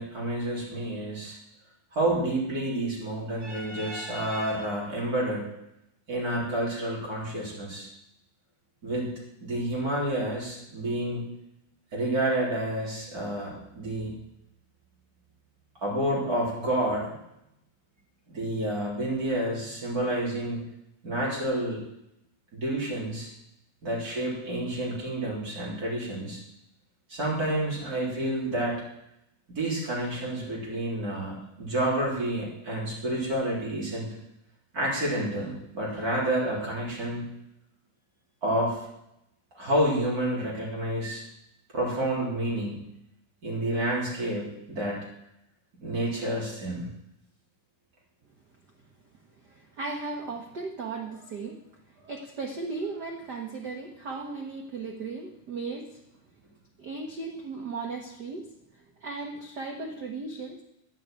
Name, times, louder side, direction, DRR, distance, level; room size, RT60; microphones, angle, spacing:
voice 1, 0.0-1.4 1.9-5.4 6.1-7.9 8.8-9.1 9.4-11.3 11.9-14.1 15.8-17.1 18.3-20.6 21.0-21.8 22.5-23.3 23.8-26.4 27.1-28.8 29.5-34.1 34.7-37.3 38.4-38.9 39.6-41.2 41.7-42.8 43.4-45.0 45.8-46.9, right 1 dB, 30° right, -4 dB, 3.9 m, -29 dB
voice 2, 49.4-51.6 51.9-56.0 56.8-58.5 58.7-60.6, right 3 dB, 80° right, 3 dB, 0.9 m, -36 dB
10.5 x 6.9 x 9.0 m, 0.82 s
omnidirectional pair, 3.6 m